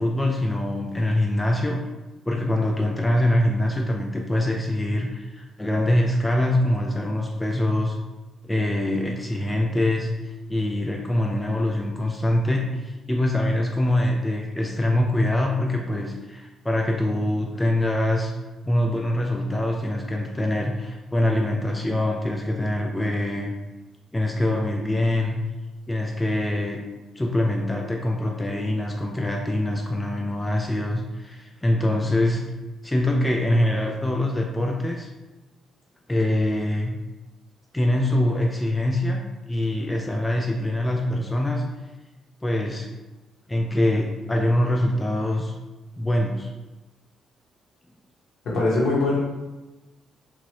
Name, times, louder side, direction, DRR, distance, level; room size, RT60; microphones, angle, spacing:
voice 1, 0.0-1.8 2.2-8.0 8.4-10.1 10.5-18.3 18.6-23.5 24.1-25.4 25.9-26.8 27.2-32.5 32.8-35.1 36.1-36.9 37.7-41.6 42.4-42.9 43.5-45.5 46.0-46.5, left 1 dB, 15° left, 1 dB, 0.3 m, -24 dB
voice 2, 48.4-49.2, left 2 dB, 70° left, -4 dB, 1.0 m, -21 dB
2.9 x 2.5 x 2.9 m, 1.1 s
cardioid pair, 90°, 0 cm